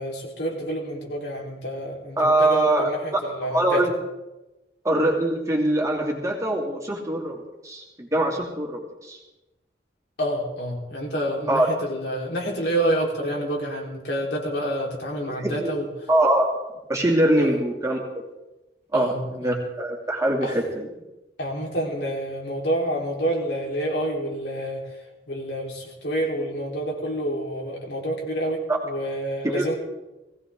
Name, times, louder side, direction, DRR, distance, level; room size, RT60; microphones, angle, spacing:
voice 1, 0.0-3.9 10.2-15.9 17.4-17.6 18.9-19.6 20.4-20.6 21.4-25.0 25.3-29.7, right 1 dB, 75° left, -1 dB, 4.0 m, -28 dB
voice 2, 2.2-2.9 3.5-3.9 4.8-9.2 11.5-11.7 15.3-15.7 16.1-16.6 16.9-18.0 18.9-20.9 28.7-28.8 29.4-29.7, right 1 dB, 15° right, -1 dB, 2.6 m, -23 dB
19.5 x 17.0 x 3.8 m, 1.0 s
head